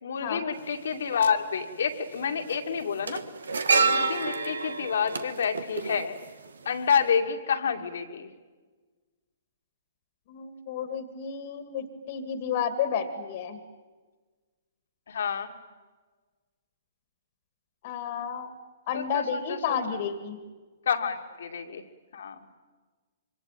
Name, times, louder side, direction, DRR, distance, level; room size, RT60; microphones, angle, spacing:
voice 1, 0.0-3.2 3.7-6.2 6.7-8.3 15.1-15.5 18.9-19.8 20.9-21.8 22.1-22.4, left 6 dB, 60° left, 5 dB, 2.4 m, -29 dB
sound 1, 0.6-0.7 1.9-2.1 2.4-6.7 7.0-7.2, right 4 dB, 70° right, 1.5 m, -28 dB
voice 2, 10.3-13.6 17.8-18.5 18.9-20.4, left 7 dB, 45° left, 10 dB, 2.3 m, -31 dB
26.5 x 24.5 x 9.0 m, 1.4 s
figure-of-eight pair, 120°, 0 cm